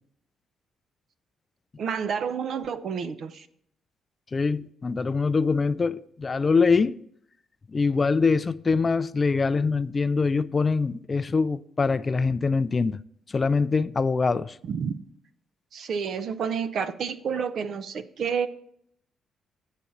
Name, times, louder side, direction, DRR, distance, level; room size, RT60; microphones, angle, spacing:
voice 1, 1.8-3.5 14.6-15.0 15.7-18.5, right 6 dB, 60° right, 0.5 m, -29 dB
voice 2, 4.3-6.9 7.7-13.0 13.3-14.6, left 4 dB, 30° left, 0.3 m, -24 dB
9.0 x 4.1 x 7.1 m
cardioid pair, 90°, 0 cm